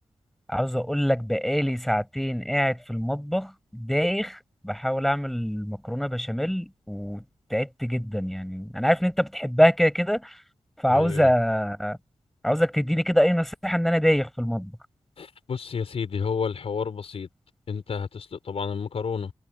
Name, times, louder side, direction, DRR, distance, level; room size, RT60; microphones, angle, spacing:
voice 1, 0.5-7.2 7.5-10.4 10.8-12.0 12.4-14.7, equal, ahead, 6.5 m, -24 dB
voice 2, 10.9-11.3 15.2-17.3 17.7-19.3, left 6 dB, 70° left, 4.4 m, -30 dB
wide cardioid pair, 110°, 11 cm